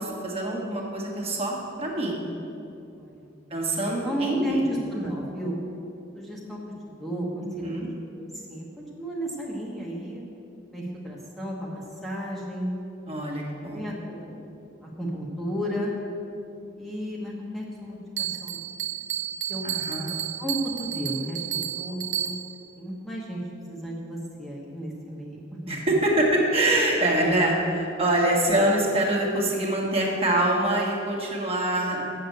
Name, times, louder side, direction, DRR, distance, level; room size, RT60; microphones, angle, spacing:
voice 1, 0.0-2.2 3.5-4.6 7.4-7.9 13.1-13.9 19.6-20.1 25.7-32.0, right 1 dB, 35° right, -2 dB, 1.6 m, -25 dB
voice 2, 2.9-3.3 4.0-5.6 6.1-6.6 6.9-7.7 8.1-10.2 10.7-12.7 13.7-15.9 16.8-18.7 19.5-19.7 20.4-22.4 22.8-23.4 23.7-25.4, equal, ahead, -5 dB, 1.2 m, -33 dB
Bell, 18.2-22.7, right 11 dB, 80° right, 0.6 m, -32 dB
7.8 x 6.8 x 7.9 m, 2.7 s
head